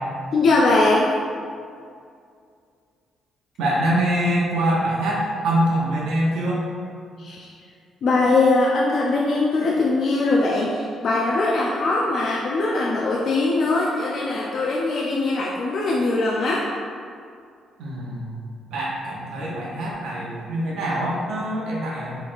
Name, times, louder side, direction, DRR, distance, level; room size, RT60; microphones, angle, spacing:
voice 1, 0.3-1.1 7.2-7.5 8.0-16.6, left 2 dB, 60° left, -3 dB, 0.4 m, -21 dB
voice 2, 3.6-6.6 17.8-18.4 18.7-22.2, right 1 dB, 85° right, -5 dB, 0.7 m, -24 dB
3.9 x 3.2 x 2.5 m, 2.2 s
cardioid pair, 90°, 0 cm